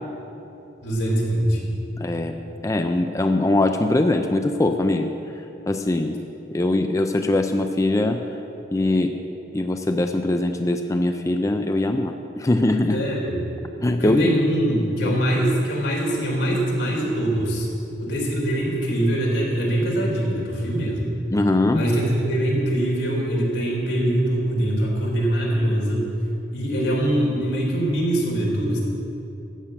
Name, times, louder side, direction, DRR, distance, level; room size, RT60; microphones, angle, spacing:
voice 1, 0.8-1.7 12.9-13.5 14.0-17.7 18.0-21.1 21.7-26.1 26.5-28.8, right 1 dB, 85° left, -2 dB, 3.3 m, -23 dB
voice 2, 2.0-2.3 2.6-5.1 5.7-6.2 6.5-8.2 8.7-9.1 9.5-13.0 13.8-14.4 15.1-15.2 21.3-21.8, left 2 dB, 20° left, 6 dB, 0.4 m, -21 dB
13.0 x 6.6 x 8.6 m, 3.0 s
head